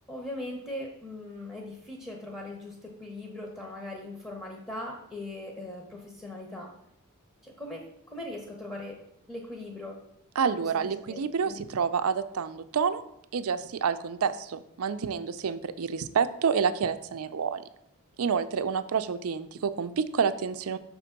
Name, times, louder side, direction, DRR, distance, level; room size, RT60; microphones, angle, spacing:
voice 1, 0.1-6.7 7.4-9.0 9.3-10.0 10.4-11.6, left 1 dB, 10° left, 0 dB, 0.9 m, -40 dB
voice 2, 10.4-13.0 13.3-17.6 18.2-20.8, right 6 dB, 70° right, 11 dB, 0.4 m, -28 dB
6.1 x 3.6 x 5.8 m, 0.75 s
head